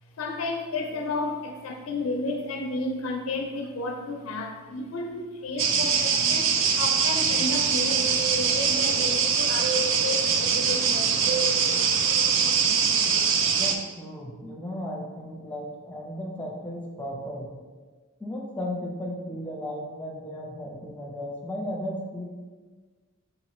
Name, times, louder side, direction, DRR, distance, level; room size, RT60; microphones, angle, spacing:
voice 1, 0.2-11.2, left 2 dB, 70° left, 3 dB, 0.4 m, -32 dB
sound 1, 5.6-13.8, right 6 dB, 65° right, 0.4 m, -23 dB
voice 2, 13.5-17.5 18.2-22.3, equal, 5° left, -2 dB, 0.7 m, -35 dB
5.1 x 3.0 x 3.0 m, 1.4 s
head